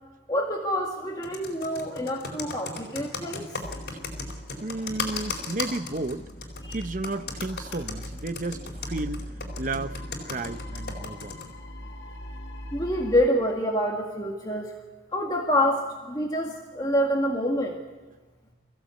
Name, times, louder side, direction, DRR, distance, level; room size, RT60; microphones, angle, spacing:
voice 1, 0.3-3.4 6.6-6.8 12.7-14.7 15.1-15.8 16.1-17.8, equal, 20° left, 1.9 m, -26 dB
Computer keyboard, 1.2-11.5, left 4 dB, 60° left, 4.2 m, -35 dB
sound 1, 3.6-13.3, equal, 75° left, 2.1 m, -40 dB
voice 2, 4.6-6.3 6.7-9.3 9.6-11.4, right 2 dB, 45° right, 0.8 m, -33 dB
24.0 x 15.5 x 8.4 m
head